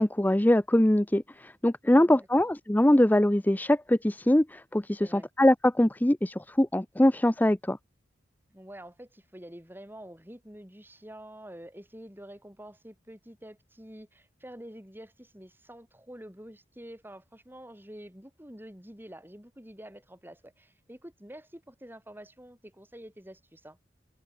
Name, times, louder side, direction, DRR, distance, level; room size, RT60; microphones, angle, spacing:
voice 1, 0.0-7.8, left 1 dB, 10° left, 0.6 m, -23 dB
voice 2, 1.9-2.5 5.0-5.3 8.5-23.8, right 1 dB, 10° right, 5.2 m, -47 dB
head